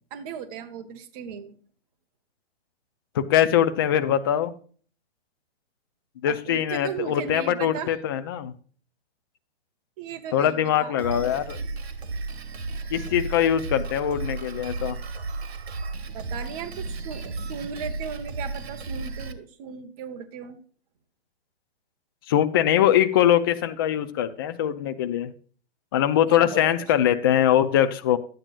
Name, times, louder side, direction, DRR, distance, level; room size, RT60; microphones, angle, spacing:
voice 1, 0.1-1.6 6.3-7.9 10.0-11.0 16.1-20.6 26.3-26.9, right 7 dB, 35° right, 6 dB, 1.0 m, -37 dB
voice 2, 3.2-4.5 6.2-8.5 10.3-11.6 12.9-15.0 22.3-25.3 25.9-28.2, left 10 dB, 25° left, 9 dB, 0.3 m, -22 dB
Drum kit, 11.0-19.3, right 3 dB, 80° right, 1.6 m, -34 dB
12.0 x 9.0 x 2.4 m, 0.43 s
hypercardioid pair, 155°, 32 cm